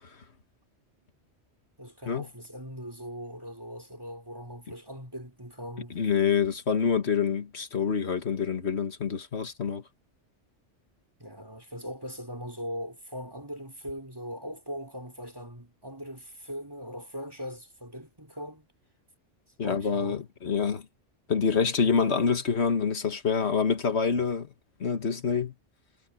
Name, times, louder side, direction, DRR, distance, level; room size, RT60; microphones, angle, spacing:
voice 1, 1.8-6.0 11.2-18.7 19.6-20.2, equal, 20° right, 4.4 m, -40 dB
voice 2, 6.0-9.8 19.6-20.8 21.3-24.5 24.8-25.5, left 6 dB, 65° left, 1.9 m, -26 dB
omnidirectional pair, 1.2 m